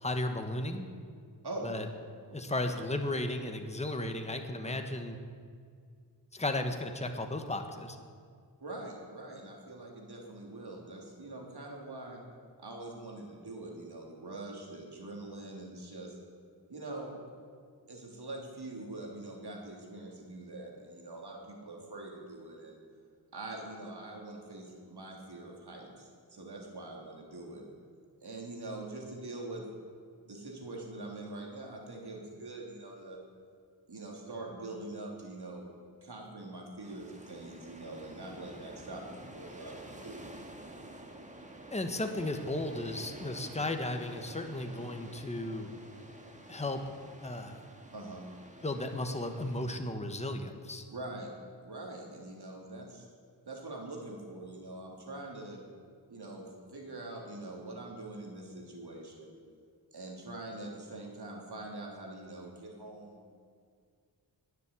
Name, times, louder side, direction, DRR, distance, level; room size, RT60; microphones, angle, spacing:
voice 1, 0.0-0.9 1.6-1.9 2.3-5.1 6.3-8.0 41.7-45.8 46.5-46.8 47.2-47.7 48.6-50.8, left 1 dB, 15° left, 5 dB, 1.3 m, -35 dB
voice 2, 8.6-12.2 12.6-16.2 16.7-17.1 17.9-22.8 23.3-27.6 28.2-29.6 30.2-33.2 33.9-35.7 36.0-40.2 47.9-48.2 50.9-51.3 51.6-53.0 53.4-55.6 56.1-59.3 59.9-63.2, right 2 dB, 65° right, 0 dB, 3.3 m, -44 dB
sound 1, 36.8-49.8, right 1 dB, 15° right, 1.7 m, -50 dB
20.5 x 7.5 x 8.3 m, 2.1 s
wide cardioid pair, 80°, 42 cm